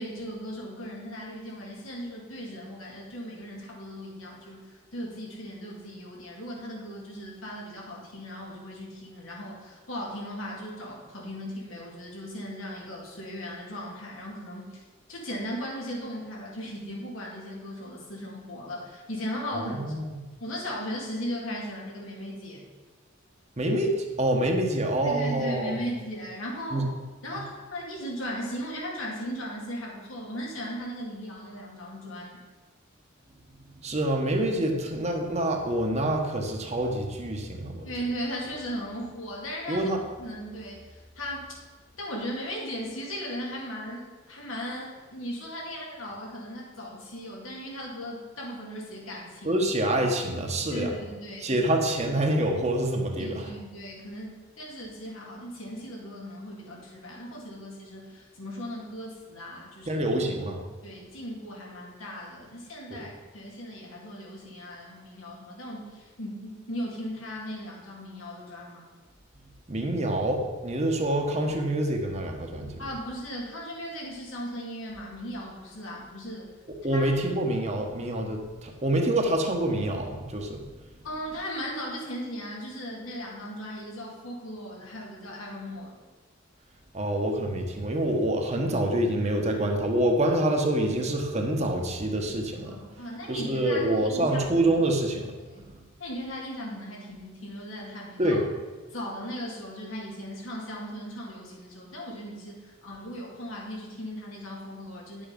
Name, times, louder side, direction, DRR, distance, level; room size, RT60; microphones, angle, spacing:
voice 1, 0.0-14.8 15.1-19.9 20.4-22.6 25.0-26.9 27.2-32.4 37.8-39.9 40.2-41.6 42.0-49.6 50.7-51.5 53.2-60.0 60.8-68.8 72.8-76.5 76.9-77.1 81.0-86.0 92.7-94.7 95.4-95.7 96.0-98.4 98.9-105.3, equal, 85° left, -3 dB, 2.6 m, -37 dB
voice 2, 19.5-20.1 23.6-25.8 26.7-26.8 33.8-37.9 39.7-40.0 49.4-50.9 51.4-53.5 59.9-60.6 63.0-63.1 69.7-72.8 76.8-80.6 86.9-92.8 93.3-95.3 95.7-95.8 98.2-98.4, right 1 dB, 35° right, 2 dB, 1.2 m, -26 dB
10.0 x 7.1 x 5.3 m, 1.3 s
head